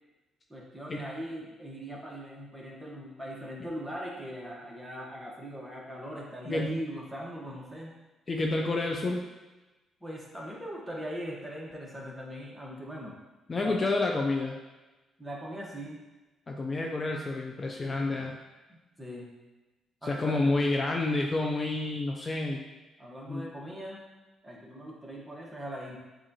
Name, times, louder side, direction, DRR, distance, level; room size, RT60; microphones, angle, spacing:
voice 1, 0.5-7.9 10.0-13.2 13.6-13.9 15.2-16.0 18.7-19.3 20.0-20.5 23.0-24.0 24.4-26.0, equal, 10° right, -3 dB, 1.2 m, -40 dB
voice 2, 6.5-6.8 8.3-9.2 13.5-14.5 16.5-18.3 20.0-22.6 23.3-23.5, left 2 dB, 30° left, 1 dB, 0.4 m, -29 dB
7.4 x 2.5 x 2.8 m, 1.1 s
cardioid pair, 90°, 0 cm